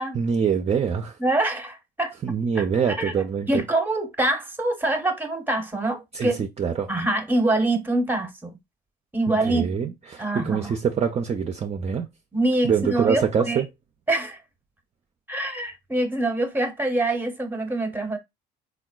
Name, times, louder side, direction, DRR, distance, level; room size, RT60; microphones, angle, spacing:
voice 1, 0.1-1.2 2.2-3.6 6.1-6.9 9.3-12.1 12.6-13.7, right 6 dB, 30° right, 0.4 m, -25 dB
voice 2, 1.2-3.1 3.5-6.4 6.9-8.5 9.1-9.7 10.2-10.7 12.3-13.6 14.1-14.4 15.3-18.2, right 2 dB, 10° right, 0.8 m, -25 dB
3.6 x 2.2 x 2.3 m
supercardioid pair, 70°, 21 cm